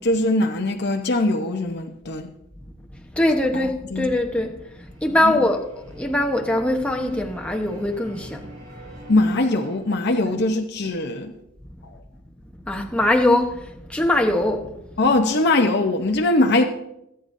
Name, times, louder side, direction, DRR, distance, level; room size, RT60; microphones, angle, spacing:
voice 1, 0.0-2.3 3.5-4.1 5.1-5.4 9.1-11.3 11.8-11.9 15.0-16.6, left 2 dB, 50° left, 0.9 m, -21 dB
voice 2, 3.1-8.5 10.2-10.4 12.7-14.8, left 1 dB, 5° left, 1.0 m, -22 dB
sound 1, 4.5-9.8, right 1 dB, 40° right, 3.4 m, -45 dB
21.0 x 9.9 x 2.7 m
head